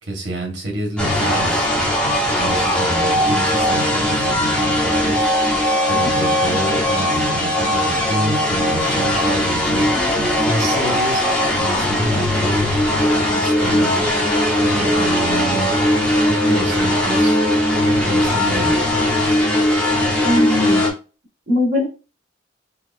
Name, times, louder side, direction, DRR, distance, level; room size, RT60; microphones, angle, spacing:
voice 1, 0.0-1.7 2.4-5.5 5.9-11.3 11.6-12.7 13.3-14.0 14.6-15.7 16.3-17.4 18.0-18.9, right 1 dB, 75° right, 1 dB, 1.4 m, -28 dB
sound 1, 1.0-20.9, left 1 dB, 5° left, 1.0 m, -19 dB
voice 2, 20.2-20.9 21.5-21.8, left 1 dB, 45° right, -5 dB, 2.0 m, -20 dB
4.6 x 2.4 x 2.5 m, 0.33 s
head